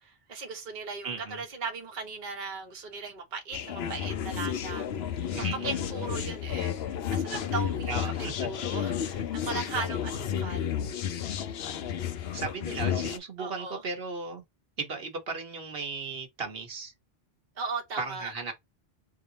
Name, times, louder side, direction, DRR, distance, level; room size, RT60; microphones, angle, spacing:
voice 1, 0.0-10.7 13.4-13.8 17.6-18.3, right 4 dB, 50° right, 1.1 m, -38 dB
voice 2, 1.0-1.4 5.3-5.7 7.9-8.5 12.3-14.4 14.8-16.9 18.0-18.5, right 4 dB, 70° right, 1.3 m, -36 dB
sound 1, 3.5-13.2, left 9 dB, 75° left, 0.9 m, -32 dB
3.4 x 2.7 x 3.9 m
omnidirectional pair, 1.1 m